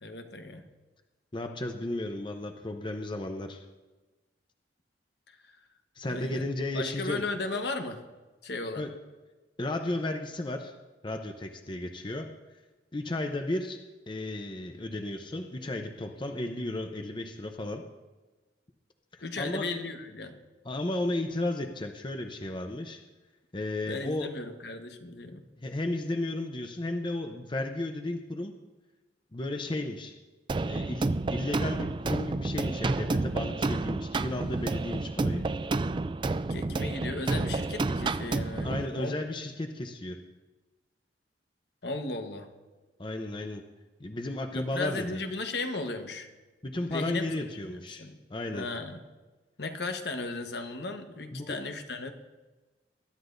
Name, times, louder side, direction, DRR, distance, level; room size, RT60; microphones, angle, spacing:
voice 1, 0.0-0.6 5.3-5.4 6.1-6.5 6.7-8.0 8.4-8.8 19.2-20.4 23.8-25.4 36.5-39.2 41.8-42.5 44.5-46.3 46.9-48.2 48.5-49.0 49.6-52.1, left 3 dB, 70° left, 5 dB, 1.2 m, -36 dB
voice 2, 1.3-3.6 6.0-7.2 8.8-8.9 9.6-10.7 11.0-12.3 12.9-17.8 19.1-19.6 20.6-23.0 23.5-24.3 25.6-28.5 29.3-30.1 30.6-35.4 38.6-40.2 43.0-43.6 44.0-45.2 46.6-48.7 51.3-51.6, left 1 dB, 30° left, 5 dB, 0.7 m, -34 dB
sound 1, 30.5-38.9, right 3 dB, 30° right, 0.3 m, -30 dB
21.0 x 11.5 x 2.6 m, 1.2 s
head